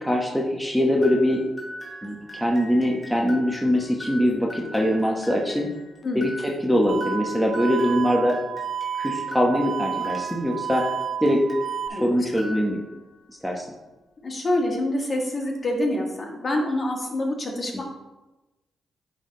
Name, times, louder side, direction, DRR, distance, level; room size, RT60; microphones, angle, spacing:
voice 1, 0.0-1.4 2.0-5.7 6.1-8.4 9.0-10.9 11.2-11.4 11.9-12.8 13.4-13.6, equal, ahead, -1 dB, 1.1 m, -22 dB
sound 1, 1.0-11.9 12.3-13.1, left 1 dB, 20° left, 1.8 m, -41 dB
sound 2, 6.9-11.9, right 8 dB, 45° right, 0.5 m, -31 dB
voice 2, 11.9-12.3 14.2-17.8, left 1 dB, 40° left, 1 dB, 1.5 m, -26 dB
10.0 x 3.5 x 3.9 m, 1.1 s
cardioid pair, 75°, 0 cm